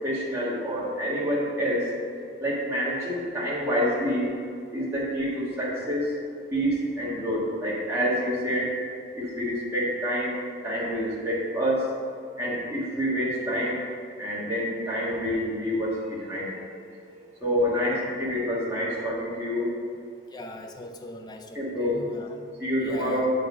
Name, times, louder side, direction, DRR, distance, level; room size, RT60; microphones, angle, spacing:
voice 1, 0.0-1.9 2.4-4.3 4.7-6.2 6.5-8.7 9.2-11.9 12.4-13.8 14.2-17.1 17.4-19.7 21.5-22.0 22.6-23.3, equal, 15° right, -8 dB, 1.4 m, -27 dB
voice 2, 20.3-22.4 22.8-23.3, left 2 dB, 20° left, 3 dB, 0.4 m, -39 dB
6.6 x 4.0 x 6.0 m, 2.4 s
head